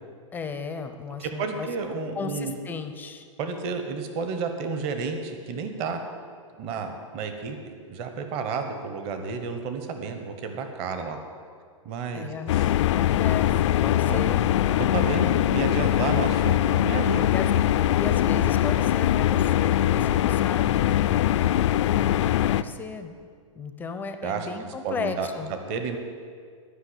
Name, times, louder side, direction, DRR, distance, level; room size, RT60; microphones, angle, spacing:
voice 1, 0.3-1.7 2.1-3.3 12.1-12.5 12.8-14.5 15.2-15.5 17.3-17.5 18.0-21.2 22.4-23.1 23.5-25.5, left 5 dB, 10° left, 8 dB, 0.5 m, -35 dB
voice 2, 1.2-2.6 3.4-6.0 6.6-7.6 7.9-11.2 11.8-12.7 14.1-14.2 14.9-17.3 24.2-26.0, right 5 dB, 35° right, 6 dB, 1.1 m, -31 dB
sound 1, 12.5-22.6, left 12 dB, 60° left, 0.4 m, -22 dB
11.5 x 5.8 x 8.0 m, 2.1 s
hypercardioid pair, 145°, 17 cm